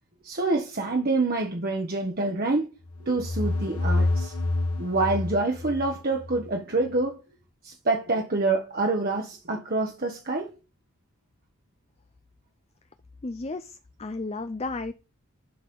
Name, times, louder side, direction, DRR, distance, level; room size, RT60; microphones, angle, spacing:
voice 1, 0.2-2.7 3.0-4.3 4.8-7.2 7.6-10.5, right 3 dB, 40° right, 1.1 m, -26 dB
sound 1, 2.9-6.5, left 2 dB, 85° left, 1.4 m, -28 dB
voice 2, 13.2-14.9, left 3 dB, 25° left, 0.5 m, -33 dB
12.0 x 4.2 x 5.3 m
head